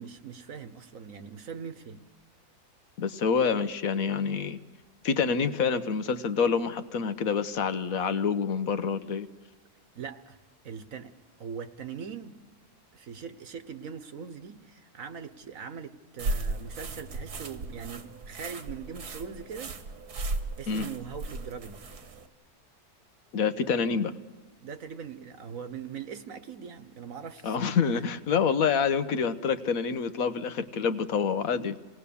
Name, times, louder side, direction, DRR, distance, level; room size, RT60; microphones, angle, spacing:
voice 1, 0.0-2.0 9.9-10.4 10.6-12.4 12.9-19.8 20.6-21.9 24.6-28.1, right 6 dB, 65° right, 1.4 m, -41 dB
voice 2, 3.0-4.6 5.0-9.3 20.7-20.9 23.3-24.1 27.4-31.8, left 6 dB, 65° left, 1.4 m, -27 dB
sound 1, 16.2-22.3, right 2 dB, 90° right, 2.0 m, -36 dB
27.0 x 19.0 x 7.0 m
omnidirectional pair, 1.6 m